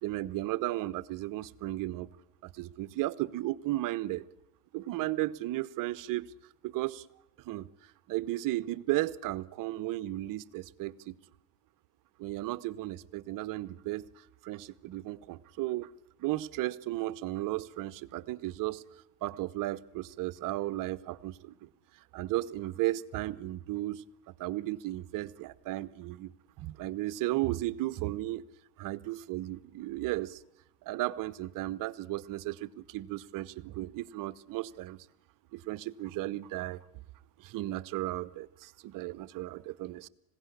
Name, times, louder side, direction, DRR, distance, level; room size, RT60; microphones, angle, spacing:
voice 1, 0.0-2.1 2.4-4.2 4.7-6.3 6.6-7.1 7.4-11.1 12.2-15.9 16.2-18.8 19.2-21.7 22.1-24.0 24.4-26.3 26.6-28.4 28.8-30.4 30.8-35.0 35.5-36.8 37.4-40.1, right 16 dB, 45° right, 0.9 m, -35 dB
20.5 x 16.5 x 9.9 m
hypercardioid pair, 95°, 46 cm